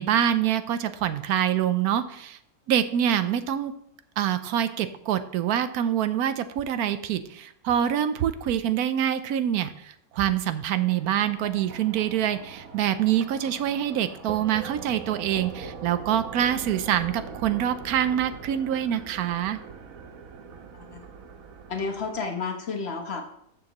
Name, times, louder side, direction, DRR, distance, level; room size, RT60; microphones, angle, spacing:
voice 1, 0.0-2.4 2.7-3.7 4.2-19.6, right 10 dB, 85° right, 12 dB, 1.1 m, -25 dB
sound 1, 10.8-22.2, right 5 dB, 70° right, 1.3 m, -42 dB
voice 2, 21.7-23.2, left 4 dB, 45° left, 3 dB, 1.2 m, -31 dB
14.0 x 6.5 x 3.0 m, 0.72 s
omnidirectional pair, 1.6 m